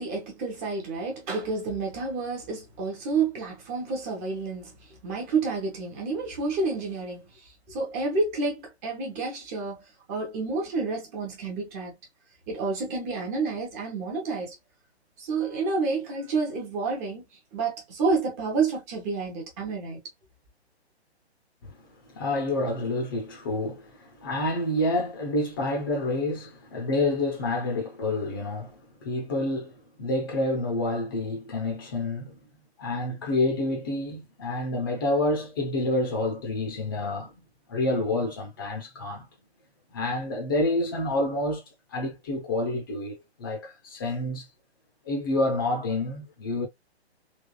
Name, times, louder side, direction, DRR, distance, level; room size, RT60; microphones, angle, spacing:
voice 1, 0.0-9.8 10.1-12.0 12.5-14.5 15.2-17.2 17.5-20.0, right 4 dB, 15° right, 0.8 m, -29 dB
voice 2, 22.1-29.7 30.0-32.4 32.8-37.3 37.7-39.2 39.9-41.6 41.9-44.5 45.0-46.7, left 2 dB, 20° left, 0.7 m, -28 dB
3.5 x 3.1 x 2.3 m
figure-of-eight pair, 135°, 33 cm